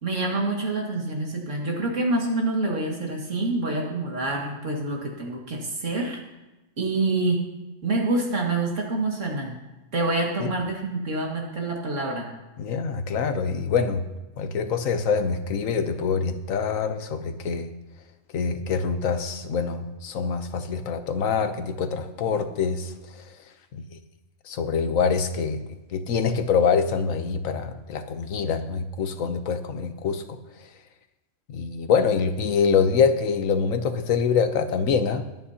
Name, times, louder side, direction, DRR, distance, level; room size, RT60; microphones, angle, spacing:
voice 1, 0.0-6.2 6.8-7.4 7.8-9.6 9.9-12.3, right 2 dB, 65° right, 0 dB, 2.4 m, -26 dB
voice 2, 12.6-14.1 14.4-17.7 18.3-23.3 23.7-24.0 24.4-25.6 25.9-30.4 31.5-35.3, left 6 dB, 85° left, 9 dB, 1.3 m, -25 dB
21.5 x 9.0 x 2.9 m, 1.0 s
omnidirectional pair, 1.4 m